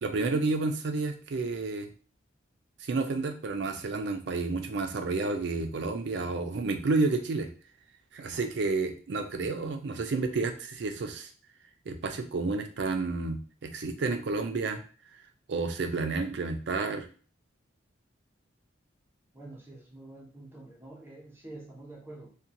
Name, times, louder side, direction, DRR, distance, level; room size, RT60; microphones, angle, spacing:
voice 1, 0.0-1.9 2.8-7.5 8.1-11.3 11.9-14.8 15.5-17.1, right 3 dB, 60° right, 5 dB, 0.4 m, -30 dB
voice 2, 19.3-22.4, right 2 dB, 10° right, -2 dB, 0.6 m, -47 dB
2.8 x 2.2 x 2.5 m, 0.38 s
head